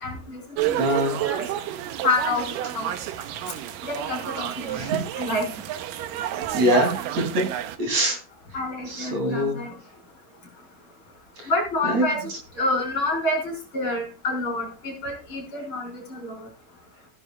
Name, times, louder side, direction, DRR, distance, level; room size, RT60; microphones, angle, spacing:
voice 1, 0.0-1.4 2.0-2.4 2.7-2.9 3.8-4.8 5.2-5.5 8.5-9.7 11.5-12.2 12.6-16.4, left 2 dB, 40° left, 1 dB, 4.7 m, -28 dB
sound 1, 0.6-7.8, right 12 dB, 85° right, 2.5 m, -30 dB
voice 2, 0.8-1.2 4.7-5.0 6.5-7.5 7.8-8.2 8.9-9.6 11.4-11.5 11.8-12.4, equal, 55° right, 3 dB, 4.1 m, -24 dB
15.0 x 10.5 x 2.4 m, 0.31 s
omnidirectional pair, 3.8 m